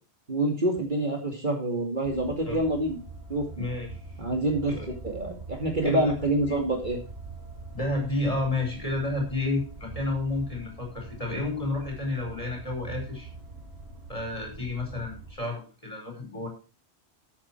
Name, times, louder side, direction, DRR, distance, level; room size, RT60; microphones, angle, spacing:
voice 1, 0.3-3.0 3.3-3.5 4.2-4.7 5.0-7.0, right 1 dB, 45° right, 3 dB, 2.5 m, -26 dB
sound 1, 2.0-15.3, right 3 dB, 70° right, 2.9 m, -43 dB
voice 2, 3.6-4.0 4.7-4.9 5.8-6.1 6.5-6.6 7.7-13.3 14.1-16.5, left 2 dB, 30° left, 1 dB, 5.6 m, -31 dB
13.5 x 8.5 x 4.5 m, 0.34 s
omnidirectional pair, 1.1 m